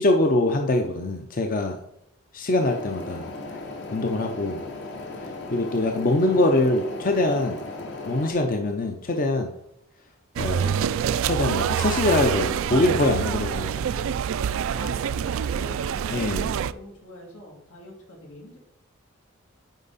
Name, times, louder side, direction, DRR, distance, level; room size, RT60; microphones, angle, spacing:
voice 1, 0.0-1.8 2.3-3.3 3.9-4.6 5.5-7.6 8.1-9.5 10.4-10.9 11.2-14.0 16.1-16.5, left 2 dB, 40° left, 4 dB, 0.6 m, -23 dB
sound 1, 2.6-8.3, left 2 dB, 55° left, 1.1 m, -36 dB
Across from diving board, 10.4-16.7, right 8 dB, 65° right, 0.3 m, -26 dB
voice 2, 14.7-18.6, left 1 dB, 90° left, -2 dB, 2.6 m, -44 dB
9.0 x 5.0 x 4.1 m, 0.79 s
head